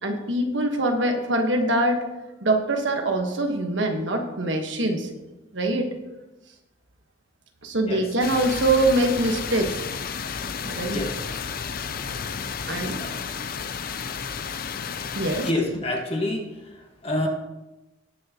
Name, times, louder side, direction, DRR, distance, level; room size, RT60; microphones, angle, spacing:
voice 1, 0.0-2.0 2.4-5.1 5.5-5.9 7.6-9.8 10.6-11.0 12.7-13.0 15.1-15.5, right 1 dB, 70° right, 3 dB, 1.3 m, -23 dB
sound 1, 8.2-15.5, left 6 dB, 45° left, 0.5 m, -32 dB
voice 2, 10.9-11.2 13.0-13.2 15.4-16.5 16.8-17.3, left 1 dB, 30° left, 1 dB, 1.5 m, -27 dB
19.0 x 6.6 x 2.9 m, 1.0 s
head